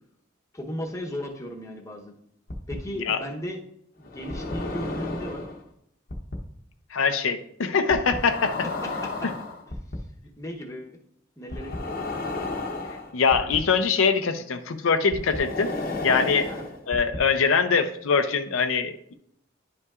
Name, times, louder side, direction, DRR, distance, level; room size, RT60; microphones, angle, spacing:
voice 1, 0.5-2.1 2.7-3.6 4.0-5.4 8.8-9.3 10.4-11.0 11.4-12.2 16.5-16.7, equal, 15° left, 0 dB, 0.9 m, -36 dB
sound 1, 2.5-2.7 4.0-5.6 6.1-6.4 7.9-10.0 11.5-13.6 15.1-17.2, left 2 dB, 45° left, 0.8 m, -32 dB
voice 2, 6.9-8.6 13.1-15.7 16.0-16.5 16.9-19.1, left 5 dB, 85° left, 8 dB, 0.5 m, -23 dB
10.5 x 5.4 x 2.4 m, 0.73 s
head